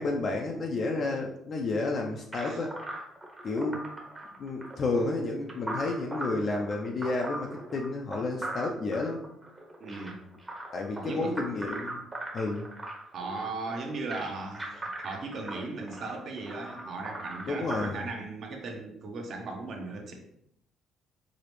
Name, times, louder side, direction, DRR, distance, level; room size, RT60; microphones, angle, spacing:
voice 1, 0.0-2.7 3.4-3.8 4.4-9.2 10.7-12.0 12.3-12.7 17.5-18.1, left 3 dB, 40° left, 1 dB, 0.4 m, -31 dB
sound 1, 2.3-17.9, right 1 dB, 15° right, 0.8 m, -40 dB
voice 2, 9.8-10.2 10.9-11.3 13.1-20.1, right 3 dB, 50° right, 2 dB, 0.7 m, -37 dB
4.8 x 2.0 x 3.0 m, 0.73 s
cardioid pair, 135°, 0 cm